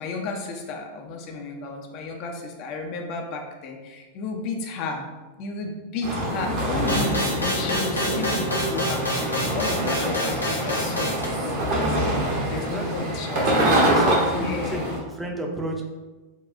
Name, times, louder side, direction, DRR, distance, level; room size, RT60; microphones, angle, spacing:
voice 1, 0.0-5.0 5.4-8.4 8.7-14.0 14.3-14.9, left 3 dB, 40° left, 2 dB, 0.5 m, -33 dB
sound 1, 6.0-15.0, right 1 dB, 45° right, 1.0 m, -25 dB
sound 2, 6.9-11.3, left 1 dB, 85° left, 0.8 m, -28 dB
voice 2, 12.5-13.1 13.7-15.8, right 1 dB, 10° right, 0 dB, 0.6 m, -31 dB
5.4 x 2.4 x 2.4 m, 1.2 s
figure-of-eight pair, 90°, 0 cm